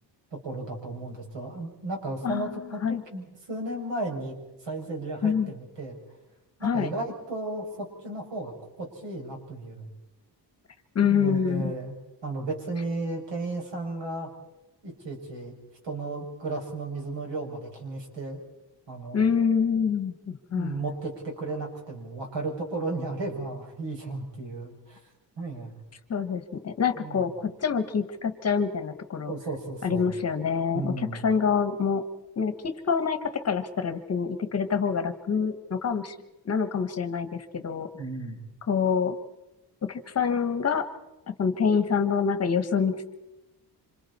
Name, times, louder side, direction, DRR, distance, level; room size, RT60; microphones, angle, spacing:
voice 1, 0.3-4.4 4.6-6.0 6.6-8.5 8.8-9.9 11.0-11.9 12.2-14.3 14.8-15.6 15.8-18.4 18.9-19.3 20.5-25.0 25.4-25.8 27.0-27.3 29.3-30.1 30.7-31.2 37.9-38.4, right 2 dB, 85° right, 1 dB, 6.7 m, -34 dB
voice 2, 5.2-5.5 6.6-6.9 10.9-11.7 19.1-20.8 26.1-29.3 29.8-32.0 32.4-36.1 36.4-37.9 38.7-39.2 39.8-40.9 41.3-43.2, left 6 dB, 35° left, 10 dB, 1.3 m, -26 dB
28.0 x 26.5 x 4.3 m, 1.0 s
wide cardioid pair, 175°, 42 cm